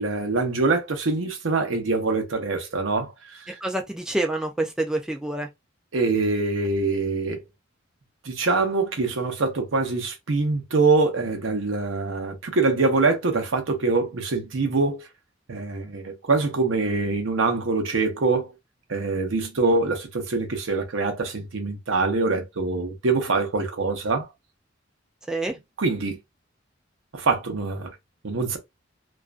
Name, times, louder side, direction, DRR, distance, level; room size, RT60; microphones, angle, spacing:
voice 1, 0.0-3.4 5.9-7.4 8.2-15.1 15.5-18.5 18.9-24.3 25.8-26.2 27.1-27.9 28.2-28.6, right 3 dB, 85° right, 0.7 m, -24 dB
voice 2, 3.6-5.5 25.3-25.5, right 2 dB, 5° right, 0.3 m, -27 dB
2.4 x 2.1 x 2.4 m
head